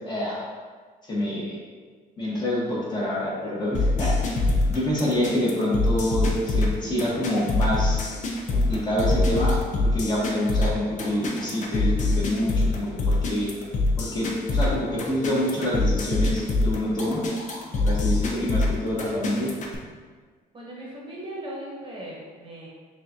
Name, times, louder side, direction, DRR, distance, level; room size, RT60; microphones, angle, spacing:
voice 1, 0.0-0.4 1.0-1.6 2.2-8.0 8.5-9.5 9.8-13.5 14.0-17.2 17.8-19.5, left 1 dB, 25° left, -6 dB, 1.4 m, -27 dB
sound 1, 3.7-19.7, left 2 dB, 45° left, 0.7 m, -24 dB
voice 2, 20.5-22.7, right 1 dB, 30° right, -4 dB, 1.0 m, -38 dB
6.4 x 2.5 x 2.8 m, 1.5 s
cardioid pair, 110°, 17 cm